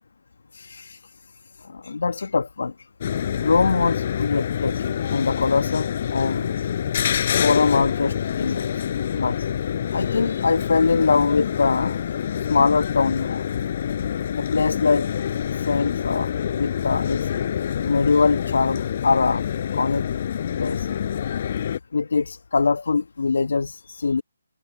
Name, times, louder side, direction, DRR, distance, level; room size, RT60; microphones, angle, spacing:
voice 1, 0.5-1.2 1.5-2.9 3.3-6.7 7.4-8.9 9.1-13.5 14.3-15.1 15.3-19.5 19.7-20.1 20.6-20.9 21.9-24.2, left 4 dB, 70° left, 1.6 m, -23 dB
sound 1, 3.0-21.8, left 9 dB, 40° left, 6.4 m, -26 dB
figure-of-eight pair, 155°, 0 cm